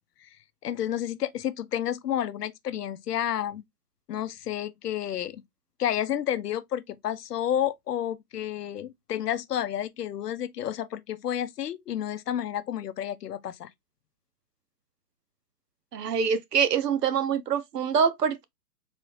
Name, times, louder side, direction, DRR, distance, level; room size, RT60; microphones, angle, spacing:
voice 1, 0.6-3.6 4.1-5.4 5.8-13.7, left 10 dB, 75° left, 0.7 m, -30 dB
voice 2, 15.9-18.4, right 7 dB, 75° right, 0.9 m, -25 dB
4.0 x 2.7 x 3.0 m
hypercardioid pair, 155°, 48 cm